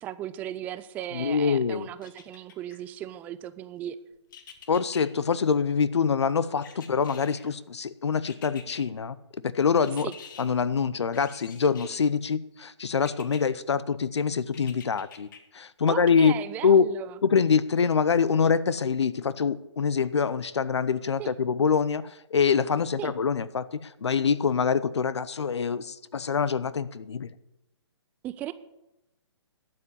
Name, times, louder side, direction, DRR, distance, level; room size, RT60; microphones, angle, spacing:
voice 1, 0.0-4.0 10.0-10.1 15.9-17.2 21.2-21.3 23.0-23.1 28.2-28.5, right 12 dB, 10° right, 14 dB, 0.3 m, -36 dB
voice 2, 1.1-1.9 4.7-9.2 9.4-10.1 10.4-15.3 15.5-16.3 16.6-16.9 17.2-27.3, left 6 dB, 70° left, 16 dB, 0.8 m, -25 dB
sound 1, 2.0-2.8 4.3-5.0 6.6-7.6 8.3-8.8 9.8-10.5 11.1-12.1 13.0-13.4 14.5-15.4 15.9-16.0, left 7 dB, 45° left, 1.6 m, -47 dB
12.0 x 7.5 x 8.1 m, 0.91 s
figure-of-eight pair, 135°, 15 cm